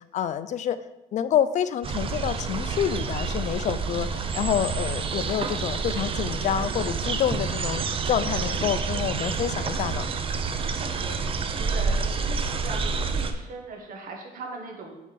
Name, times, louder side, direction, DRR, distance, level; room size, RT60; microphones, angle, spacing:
voice 1, 0.1-0.8 1.1-10.0, left 9 dB, 45° left, 14 dB, 0.4 m, -27 dB
sound 1, 1.8-13.3, right 4 dB, 35° right, 0.5 m, -28 dB
voice 2, 10.7-12.0 12.2-14.9, right 3 dB, 55° right, 2 dB, 1.3 m, -40 dB
5.2 x 4.3 x 5.1 m, 0.99 s
cardioid pair, 110°, 17 cm